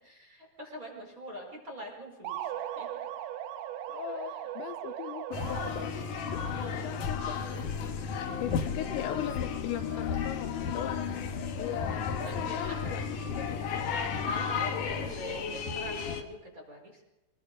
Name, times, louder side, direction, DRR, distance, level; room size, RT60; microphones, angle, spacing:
voice 1, 0.0-2.9 4.1-4.5 6.4-7.1 8.3-8.4 12.2-12.9 14.1-17.0, right 1 dB, 20° right, 0 dB, 4.4 m, -44 dB
sound 1, 2.3-6.1, right 11 dB, 85° right, 3.3 m, -38 dB
voice 2, 3.9-11.2 11.6-13.0 13.4-13.7, left 11 dB, 80° left, 9 dB, 3.1 m, -39 dB
sound 2, 5.3-16.2, left 6 dB, 60° left, 2.5 m, -33 dB
25.0 x 21.0 x 5.3 m, 0.97 s
omnidirectional pair, 5.3 m